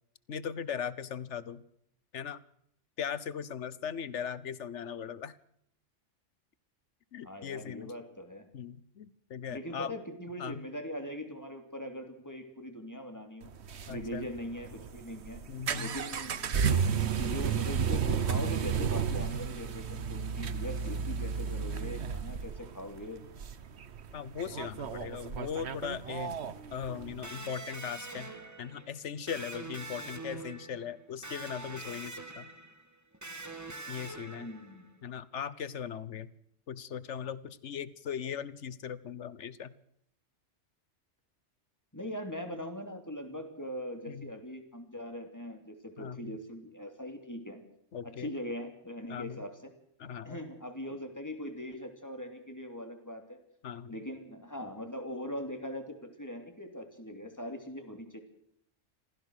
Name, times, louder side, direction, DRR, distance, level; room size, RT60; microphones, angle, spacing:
voice 1, 0.3-1.6 2.1-2.4 3.0-5.3 7.1-7.9 8.5-9.9 10.4-10.6 13.9-14.3 15.5-16.0 24.1-26.4 26.7-32.5 33.9-34.5 35.0-36.3 36.7-39.7 44.1-44.3 46.0-46.4 47.9-48.3 49.1-49.4 50.0-50.5 53.6-54.0, left 8 dB, 75° left, 17 dB, 1.3 m, -39 dB
voice 2, 7.2-8.5 9.5-13.5 13.9-15.4 15.8-16.9 17.1-23.2 34.3-34.9 41.9-47.6 48.0-49.7 50.2-53.4 53.9-58.2, equal, 15° left, 5 dB, 3.0 m, -41 dB
sound 1, 13.4-27.3, right 6 dB, 65° right, 1.3 m, -33 dB
Electric guitar, 27.2-34.9, right 3 dB, 15° right, 1.7 m, -44 dB
26.5 x 16.0 x 6.5 m, 0.72 s
omnidirectional pair, 1.2 m